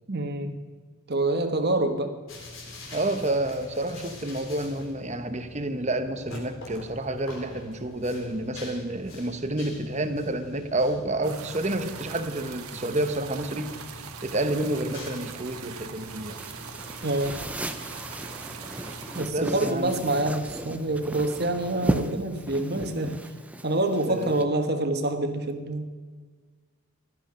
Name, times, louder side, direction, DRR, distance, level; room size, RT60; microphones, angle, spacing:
voice 1, 0.1-0.6 1.1-2.1 17.0-17.4 19.1-23.2 23.6-26.0, right 2 dB, 45° right, 6 dB, 1.4 m, -26 dB
sound 1, 2.3-22.2, left 2 dB, 65° left, 3.7 m, -45 dB
voice 2, 2.9-16.4 19.3-20.0 24.1-24.4, right 1 dB, 30° right, 9 dB, 1.0 m, -29 dB
sound 2, 11.2-19.2, right 6 dB, 90° right, 1.4 m, -41 dB
sound 3, 16.4-24.4, right 1 dB, 5° right, 0.6 m, -35 dB
16.5 x 12.5 x 5.2 m, 1.5 s
head